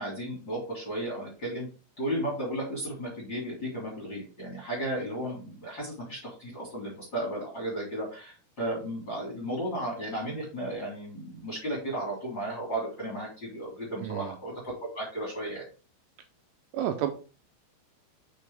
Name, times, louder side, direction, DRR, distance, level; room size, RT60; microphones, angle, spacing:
voice 1, 0.0-1.7 2.0-15.6, right 1 dB, 45° left, -3 dB, 1.6 m, -34 dB
voice 2, 14.0-14.4 16.7-17.1, right 11 dB, 80° right, 7 dB, 2.5 m, -30 dB
6.8 x 4.4 x 3.4 m, 0.36 s
omnidirectional pair, 5.2 m